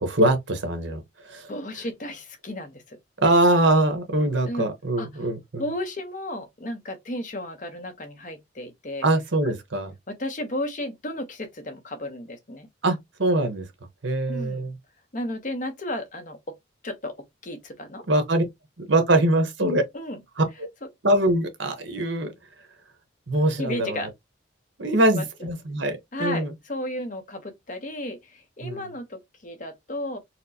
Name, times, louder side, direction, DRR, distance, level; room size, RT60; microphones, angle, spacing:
voice 1, 0.0-1.5 3.2-5.6 9.0-9.9 12.8-13.7 14.0-14.7 18.1-18.4 18.8-19.8 20.4-20.5 21.0-22.3 23.3-24.1 24.8-26.5 28.6-28.8, right 1 dB, 70° right, 0.9 m, -23 dB
voice 2, 1.5-3.0 4.5-4.7 5.0-5.3 5.6-9.1 10.1-12.7 14.3-14.7 15.1-16.5 16.8-17.2 17.4-18.0 19.9-20.2 20.8-20.9 23.6-24.1 25.2-25.3 26.1-30.2, left 1 dB, 40° left, 0.8 m, -33 dB
4.2 x 2.0 x 2.7 m
head